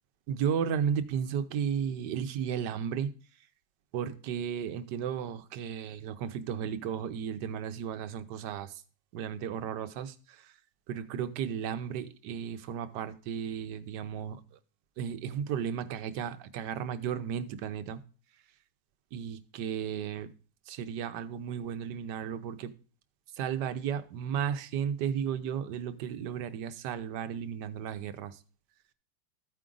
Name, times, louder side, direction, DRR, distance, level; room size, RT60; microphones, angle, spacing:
voice 1, 0.3-3.1 3.9-8.8 9.1-10.5 10.9-14.6 15.0-18.0 19.1-20.3 20.7-22.7 23.3-28.4, right 8 dB, 70° right, 1.3 m, -34 dB
14.0 x 4.9 x 3.7 m
omnidirectional pair, 2.1 m